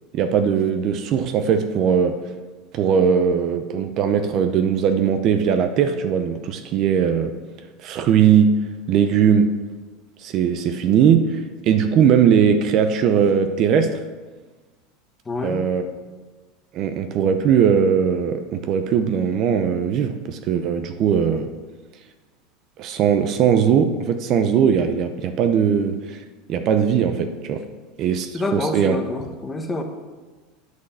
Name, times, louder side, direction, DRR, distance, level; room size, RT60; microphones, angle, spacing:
voice 1, 0.1-2.2 2.7-7.3 7.8-8.6 8.9-9.6 10.2-14.0 15.4-15.8 16.7-21.5 22.8-26.2 26.5-27.6 28.0-29.0, right 7 dB, 40° right, 8 dB, 0.7 m, -19 dB
voice 2, 15.3-15.6 28.3-29.8, left 2 dB, 15° left, 4 dB, 1.2 m, -27 dB
9.7 x 6.4 x 8.1 m, 1.3 s
supercardioid pair, 150°, 0 cm